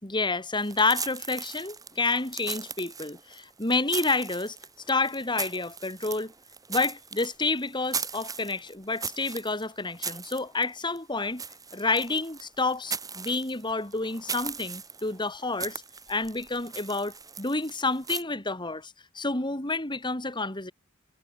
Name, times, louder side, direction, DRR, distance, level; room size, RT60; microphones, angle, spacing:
voice 1, 0.0-4.6 4.9-6.3 6.7-11.4 11.7-15.8 16.1-20.7, left 3 dB, 25° left, 3.4 m, -29 dB
sound 1, 0.6-18.2, right 5 dB, 20° right, 4.7 m, -39 dB
head